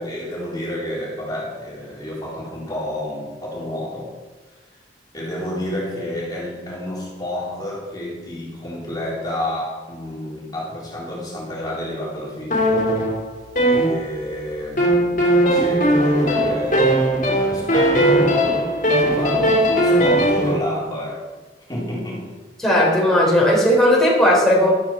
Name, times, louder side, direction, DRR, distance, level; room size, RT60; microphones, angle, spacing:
voice 1, 0.0-4.1 5.1-12.9 13.6-18.6 18.9-21.3 21.7-22.3, left 1 dB, 25° left, -6 dB, 3.9 m, -30 dB
sound 1, 12.5-14.4 14.8-20.6, right 1 dB, 50° left, 3.4 m, -18 dB
voice 2, 22.6-24.7, left 1 dB, 5° left, -5 dB, 4.1 m, -16 dB
14.0 x 13.0 x 4.5 m, 1.3 s
head